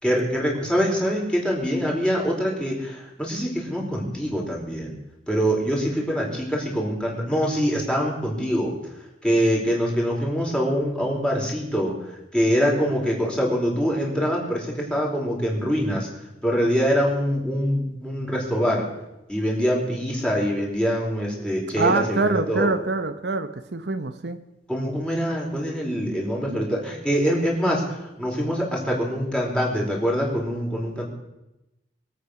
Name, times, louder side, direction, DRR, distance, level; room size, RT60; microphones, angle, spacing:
voice 1, 0.0-4.9 5.3-8.7 9.2-11.9 12.3-16.1 16.4-18.8 19.3-22.7 24.7-27.8 28.2-31.0, equal, 5° left, -3 dB, 4.4 m, -24 dB
voice 2, 21.8-24.4 26.5-26.6, right 3 dB, 70° right, 10 dB, 0.9 m, -25 dB
23.5 x 8.7 x 6.5 m, 0.92 s
head